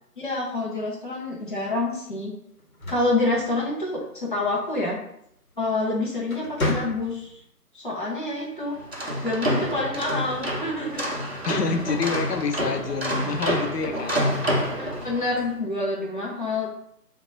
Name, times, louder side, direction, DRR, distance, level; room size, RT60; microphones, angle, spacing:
voice 1, 0.2-2.3 2.9-5.0 5.6-7.3 7.7-8.8 9.2-11.1 14.8-16.7, left 2 dB, 35° left, -5 dB, 0.5 m, -27 dB
sound 1, 2.6-4.1 5.6-5.8 6.2-7.4, left 1 dB, 60° left, 1.0 m, -31 dB
sound 2, 8.8-15.4, equal, 45° right, 0.4 m, -28 dB
voice 2, 11.4-14.3, left 5 dB, 75° left, 5 dB, 0.6 m, -27 dB
2.9 x 2.2 x 4.1 m, 0.73 s
figure-of-eight pair, 160°, 48 cm